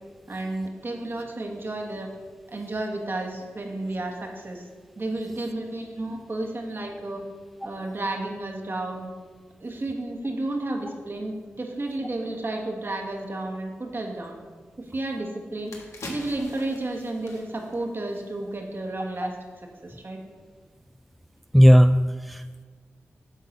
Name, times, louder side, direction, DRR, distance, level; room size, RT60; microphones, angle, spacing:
voice 1, 0.3-2.1 2.5-4.7 5.0-7.2 7.6-9.1 9.6-14.4 14.8-15.7 16.1-19.3 19.8-20.2, right 2 dB, 45° right, 1 dB, 1.6 m, -32 dB
sound 1, 15.0-15.1 15.5-18.8 19.1-19.2, left 2 dB, 75° left, 1.5 m, -43 dB
voice 2, 21.5-22.6, equal, ahead, 9 dB, 0.3 m, -16 dB
9.0 x 3.9 x 6.5 m, 1.5 s
cardioid pair, 40°, 5 cm